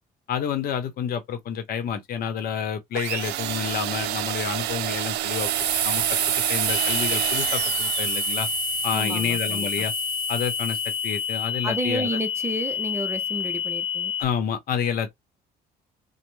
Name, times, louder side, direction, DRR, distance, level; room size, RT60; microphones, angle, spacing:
voice 1, 0.3-5.5 5.8-6.0 6.5-8.5 8.8-9.9 10.3-12.2 14.2-15.1, left 7 dB, 60° left, 0.8 m, -29 dB
sound 1, 2.9-8.6, right 13 dB, 80° right, 0.4 m, -30 dB
sound 2, 5.3-11.5, right 8 dB, 55° right, 0.9 m, -28 dB
sound 3, 6.7-14.2, left 9 dB, 35° left, 0.4 m, -29 dB
voice 2, 8.9-9.9 11.6-14.1, right 1 dB, 15° right, 0.6 m, -31 dB
3.2 x 2.1 x 3.1 m
cardioid pair, 110°, 17 cm